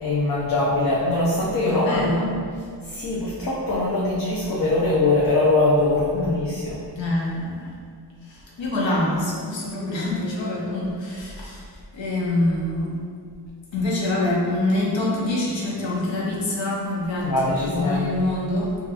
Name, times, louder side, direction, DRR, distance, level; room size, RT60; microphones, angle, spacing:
voice 1, 0.0-2.0 2.9-6.8 17.2-18.1, left 2 dB, 55° left, -6 dB, 0.5 m, -22 dB
voice 2, 1.7-2.4 6.1-6.4 7.0-7.7 8.2-11.6 11.9-13.0 13.7-18.8, left 1 dB, 90° left, -5 dB, 0.7 m, -25 dB
2.8 x 2.4 x 2.3 m, 2.1 s
wide cardioid pair, 85°, 43 cm